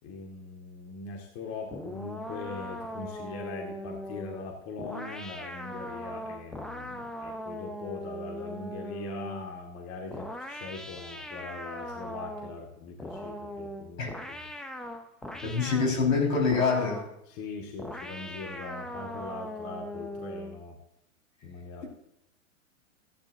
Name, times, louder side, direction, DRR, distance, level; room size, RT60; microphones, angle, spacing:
voice 1, 0.0-14.4 15.3-16.0 17.3-20.8 21.4-21.8, left 4 dB, 40° left, 1 dB, 2.2 m, -41 dB
sound 1, 1.7-9.5 10.1-12.6 13.0-16.0 16.5-17.2 17.8-20.6, equal, ahead, 0.7 m, -40 dB
voice 2, 15.4-17.1, left 4 dB, 80° left, 0 dB, 5.2 m, -25 dB
15.0 x 10.5 x 2.8 m, 0.77 s
hypercardioid pair, 105°, 39 cm